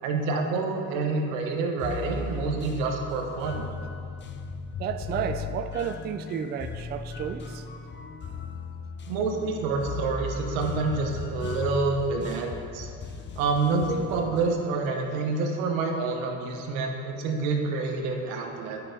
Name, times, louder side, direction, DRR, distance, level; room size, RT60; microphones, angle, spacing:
voice 1, 0.0-3.6 9.1-12.9 13.4-18.8, right 3 dB, 90° right, 2 dB, 1.1 m, -28 dB
sound 1, 1.8-14.6, left 4 dB, 30° left, 0.5 m, -37 dB
voice 2, 4.8-7.7, right 8 dB, 25° right, 8 dB, 0.3 m, -32 dB
8.7 x 5.6 x 4.0 m, 2.5 s
supercardioid pair, 95°, 39 cm